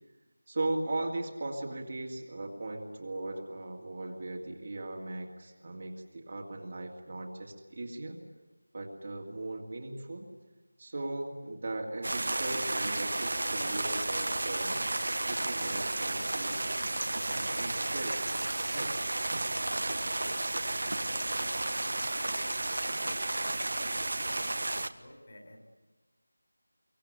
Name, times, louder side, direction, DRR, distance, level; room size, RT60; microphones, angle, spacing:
voice 1, 0.5-8.2 8.7-10.3 10.8-14.8 15.1-16.6 17.2-18.3 18.7-18.9, right 2 dB, 30° right, 0 dB, 2.4 m, -38 dB
sound 1, 12.0-24.9, right 2 dB, 55° right, 1.3 m, -32 dB
voice 2, 24.3-25.6, left 1 dB, 35° left, 4 dB, 4.9 m, -53 dB
25.0 x 24.0 x 9.3 m, 1.2 s
figure-of-eight pair, 175°, 0 cm